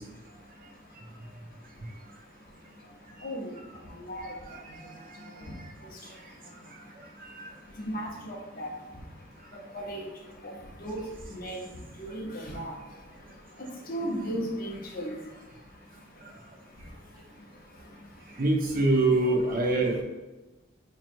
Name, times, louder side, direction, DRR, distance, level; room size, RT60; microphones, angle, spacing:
voice 1, 3.2-3.5 4.0-4.3 5.5-5.6 7.8-8.7 9.7-10.1 10.4-10.5 10.8-11.7 12.0-12.7 13.9-15.1, equal, 50° left, -2 dB, 0.8 m, -35 dB
voice 2, 4.5-4.9 5.2-5.3 7.2-7.5 18.4-20.0, right 2 dB, 45° right, 1 dB, 0.6 m, -25 dB
4.6 x 3.1 x 2.5 m, 1.1 s
head